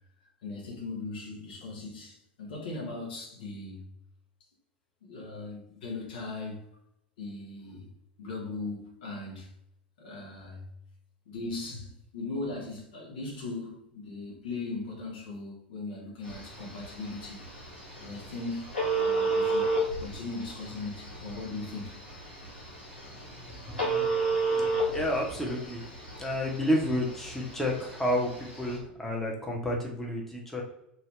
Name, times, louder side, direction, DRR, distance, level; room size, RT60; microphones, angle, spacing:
voice 1, 0.4-3.9 5.0-6.7 7.2-7.9 8.2-9.5 10.0-10.7 11.3-17.5 18.0-22.0, left 3 dB, 65° left, 1.1 m, -39 dB
Telephone, 16.3-28.8, right 2 dB, 85° left, 1.3 m, -32 dB
voice 2, 23.5-25.9 26.2-30.6, left 1 dB, 5° left, 0.9 m, -31 dB
2.8 x 2.7 x 3.2 m
figure-of-eight pair, 85°, 5 cm